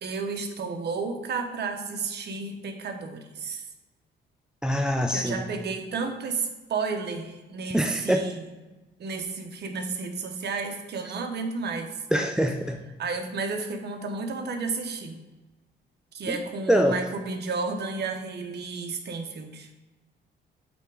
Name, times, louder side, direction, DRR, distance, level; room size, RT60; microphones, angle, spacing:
voice 1, 0.0-3.6 5.1-8.5 9.0-11.9 13.0-15.2 16.1-19.7, right 4 dB, 55° right, 5 dB, 1.1 m, -32 dB
voice 2, 4.6-5.4 7.7-8.3 12.1-12.8 16.3-16.4 16.7-16.9, equal, 5° right, 5 dB, 0.4 m, -24 dB
8.3 x 3.5 x 4.8 m, 1.2 s
cardioid pair, 90°, 20 cm